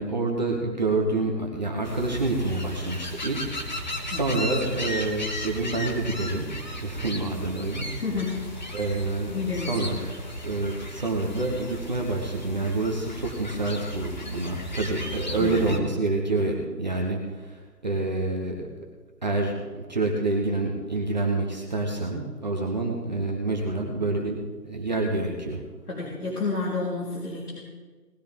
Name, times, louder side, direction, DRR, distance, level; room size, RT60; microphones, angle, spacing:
voice 1, 0.0-6.5 6.8-8.3 8.7-10.1 10.4-18.7 19.2-25.6, right 2 dB, 25° right, -1 dB, 1.0 m, -28 dB
sound 1, 1.8-15.8, left 1 dB, 25° left, 1.0 m, -35 dB
voice 2, 8.0-8.6 9.3-9.8 15.4-15.9 25.9-27.6, left 3 dB, 65° left, -5 dB, 3.3 m, -30 dB
19.0 x 11.5 x 3.6 m, 1.4 s
figure-of-eight pair, 160°, 50 cm